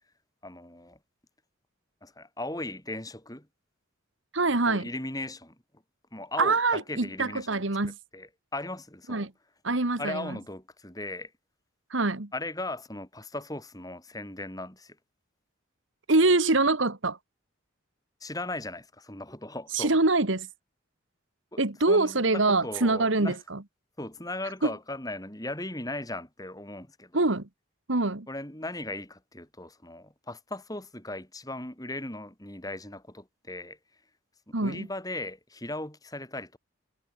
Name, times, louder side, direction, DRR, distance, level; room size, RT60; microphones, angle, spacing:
voice 1, 0.4-1.0 2.0-3.5 4.7-5.6 6.1-7.6 8.1-9.3 10.0-11.3 12.3-15.0 18.2-20.0 21.5-23.4 24.0-27.3 28.3-33.8 34.5-36.6, left 2 dB, 20° left, 5.4 m, -38 dB
voice 2, 4.3-4.8 6.4-8.0 9.1-9.3 9.6-10.4 11.9-12.3 16.1-17.2 19.7-20.5 21.6-23.6 24.6-24.7 27.1-27.5 27.9-28.3 34.5-34.9, right 3 dB, 75° right, 1.8 m, -24 dB
head